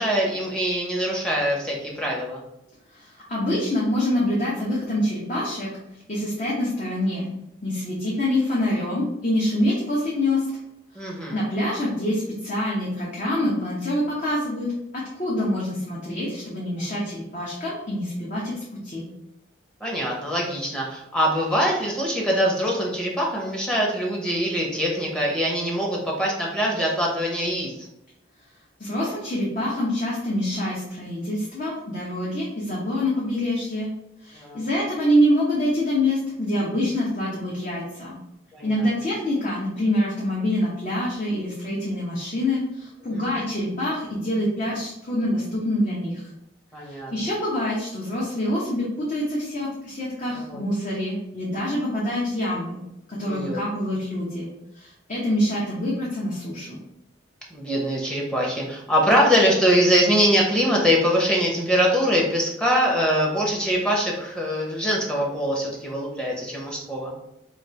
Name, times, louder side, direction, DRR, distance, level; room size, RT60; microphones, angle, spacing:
voice 1, 0.0-2.4 10.9-11.4 19.8-27.7 34.3-34.6 38.5-38.7 43.1-43.2 46.7-47.1 50.3-50.6 53.2-53.6 57.5-67.1, equal, 5° left, -3 dB, 0.8 m, -23 dB
voice 2, 2.9-5.7 6.1-7.3 7.6-10.5 11.0-19.1 28.8-33.9 34.2-38.1 38.6-46.2 46.8-52.8 53.1-54.5 54.8-56.8, left 1 dB, 40° left, -6 dB, 0.9 m, -26 dB
3.1 x 2.9 x 4.3 m, 0.86 s
head